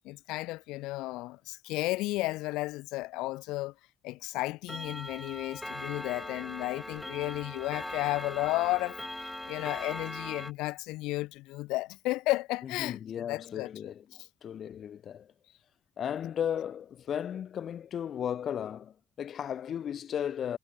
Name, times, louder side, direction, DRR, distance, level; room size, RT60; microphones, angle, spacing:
voice 1, 0.0-3.7 4.0-14.3, left 20 dB, 85° left, 1.2 m, -33 dB
Clock, 4.7-10.5, left 1 dB, 10° left, 0.9 m, -40 dB
voice 2, 12.6-14.0 14.4-15.3 16.0-20.6, left 9 dB, 70° left, 3.3 m, -35 dB
hypercardioid pair, 45°, 0 cm